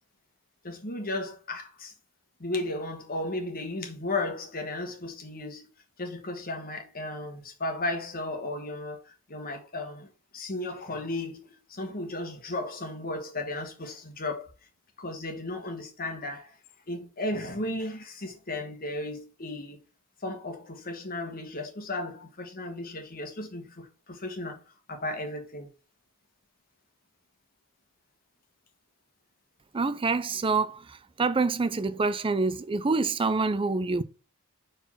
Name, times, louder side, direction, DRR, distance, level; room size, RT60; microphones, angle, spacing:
voice 1, 0.6-1.9 2.4-5.7 6.0-10.1 10.3-14.5 15.0-16.6 16.9-19.8 20.2-24.6 24.9-25.7, left 2 dB, 40° left, 1.6 m, -35 dB
voice 2, 29.7-34.0, right 4 dB, 25° right, 0.4 m, -26 dB
4.8 x 4.0 x 5.6 m
head